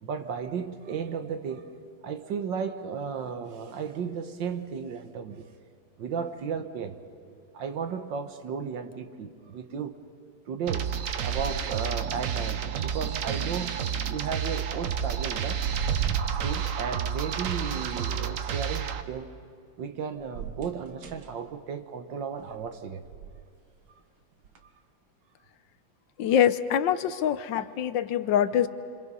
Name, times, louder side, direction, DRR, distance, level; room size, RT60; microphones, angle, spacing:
voice 1, 0.0-1.8 2.0-5.5 6.0-7.0 7.3-10.0 10.5-11.0 11.2-15.6 16.4-19.3 19.8-23.0 27.5-27.7, right 6 dB, 70° right, 8 dB, 1.7 m, -34 dB
sound 1, 10.7-19.0, right 8 dB, 55° right, 1.0 m, -31 dB
sound 2, 11.2-12.0 12.3-13.3 13.9-14.3 14.7-17.2 20.2-21.3 22.4-22.6 23.0-23.4 24.4-24.6, right 7 dB, 90° right, 2.2 m, -35 dB
voice 2, 26.2-28.7, left 9 dB, 75° left, 12 dB, 1.4 m, -24 dB
27.0 x 26.5 x 5.5 m, 2.4 s
omnidirectional pair, 2.1 m